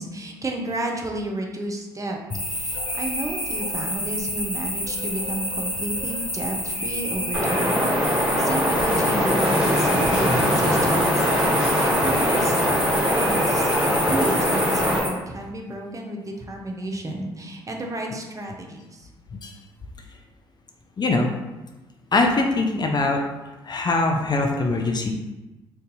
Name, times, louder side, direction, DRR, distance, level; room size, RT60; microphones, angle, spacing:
voice 1, 0.0-2.2 2.5-11.2 11.5-12.6 13.2-13.7 14.1-18.8, right 1 dB, 25° right, 1 dB, 0.7 m, -32 dB
sound 1, 2.3-15.1, equal, 10° left, 1.1 m, -29 dB
Wind, 7.3-15.0, equal, 5° right, 1.5 m, -22 dB
voice 2, 21.0-21.3 22.1-23.2 23.6-25.1, left 3 dB, 35° left, 3 dB, 0.5 m, -22 dB
2.6 x 2.3 x 4.0 m, 1.1 s
hypercardioid pair, 45°, 12 cm